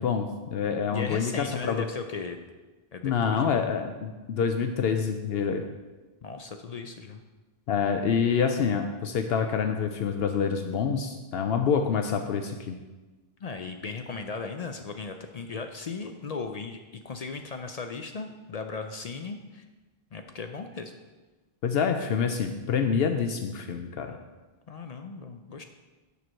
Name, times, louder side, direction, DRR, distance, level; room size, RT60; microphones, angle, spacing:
voice 1, 0.0-1.8 3.0-5.6 7.7-12.8 21.6-24.2, left 6 dB, 75° left, 5 dB, 0.8 m, -27 dB
voice 2, 0.9-2.5 2.9-3.6 6.2-7.2 13.4-19.6 20.1-20.9 24.7-25.6, left 4 dB, 55° left, 6 dB, 0.5 m, -37 dB
6.7 x 4.5 x 6.3 m, 1.2 s
omnidirectional pair, 1.0 m